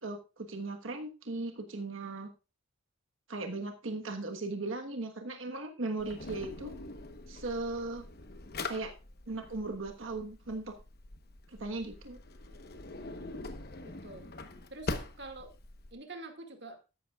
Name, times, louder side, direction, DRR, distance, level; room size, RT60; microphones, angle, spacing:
voice 1, 0.0-2.3 3.3-6.7 7.3-8.1 8.6-8.9 9.3-10.8 11.6-12.2, right 2 dB, 75° right, 4 dB, 1.3 m, -37 dB
Drawer open or close, 6.0-15.9, left 2 dB, 50° left, 1.1 m, -43 dB
voice 2, 13.8-14.3 14.7-15.5 15.9-16.8, right 2 dB, 60° right, 4 dB, 2.2 m, -46 dB
13.5 x 11.0 x 2.4 m, 0.30 s
head